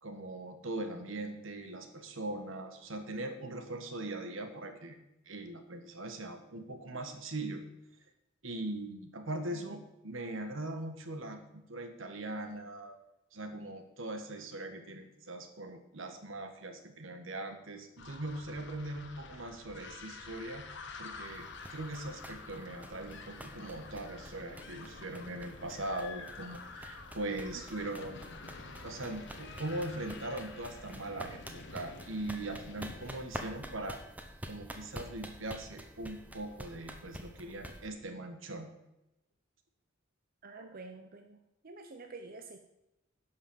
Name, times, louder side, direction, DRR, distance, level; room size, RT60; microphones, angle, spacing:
voice 1, 0.0-5.0 5.3-7.6 8.4-13.0 13.3-20.6 21.0-28.2 28.8-34.0 34.5-38.7, right 2 dB, 75° right, 7 dB, 1.4 m, -41 dB
sound 1, 18.0-33.2, left 4 dB, 60° left, 1.1 m, -49 dB
sound 2, 21.2-37.9, right 1 dB, 10° right, 0.9 m, -48 dB
voice 2, 40.4-41.4 41.6-42.6, right 3 dB, 45° right, 5 dB, 0.7 m, -48 dB
11.0 x 5.9 x 7.0 m, 0.91 s
head